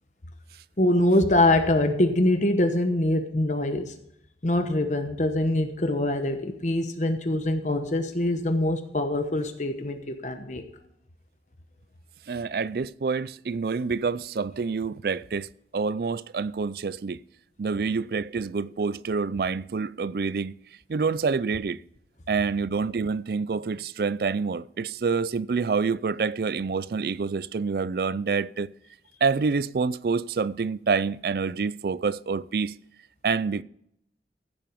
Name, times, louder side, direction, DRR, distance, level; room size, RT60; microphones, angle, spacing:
voice 1, 0.8-4.0 4.4-10.6, left 1 dB, 40° left, 1.0 m, -24 dB
voice 2, 12.3-15.5 15.7-17.2 17.6-20.5 20.9-21.8 22.3-28.7 29.2-32.7 33.2-33.6, right 5 dB, 55° right, 0.4 m, -27 dB
15.0 x 7.6 x 5.2 m
head